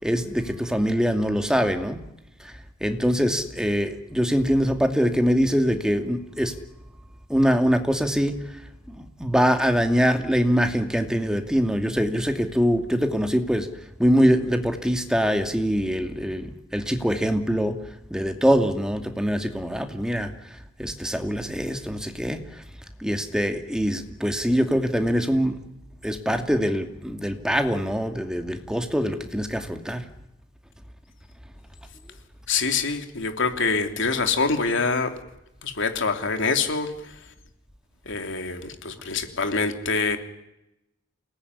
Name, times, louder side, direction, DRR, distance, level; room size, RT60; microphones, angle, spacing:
voice 1, 0.0-2.0 2.8-6.5 7.3-8.4 9.0-13.7 14.0-17.7 18.1-20.3 20.8-22.4 23.0-25.6 26.0-30.0, equal, 5° right, 5 dB, 2.5 m, -23 dB
voice 2, 32.5-35.1 35.6-36.9 38.0-40.2, left 4 dB, 65° left, 6 dB, 3.3 m, -25 dB
28.5 x 19.5 x 9.9 m, 0.88 s
head